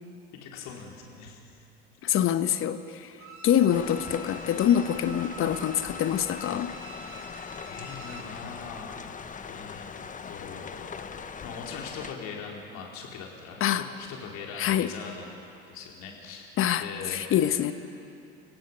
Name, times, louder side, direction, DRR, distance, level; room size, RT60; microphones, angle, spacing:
voice 1, 0.3-1.4 7.7-9.0 9.5-9.9 10.2-15.4 15.7-16.5 16.8-17.5, left 5 dB, 60° left, -1 dB, 4.4 m, -41 dB
voice 2, 2.0-3.2 3.4-6.7 13.6-13.9 14.5-14.9 16.6-17.7, left 10 dB, 45° left, 10 dB, 1.2 m, -25 dB
Bowed string instrument, 3.2-8.4 8.7-8.8, right 1 dB, 60° right, 4.9 m, -46 dB
sound 1, 3.7-12.1, left 6 dB, 25° left, 1.2 m, -41 dB
30.0 x 16.5 x 5.7 m, 2.7 s
hypercardioid pair, 65°, 31 cm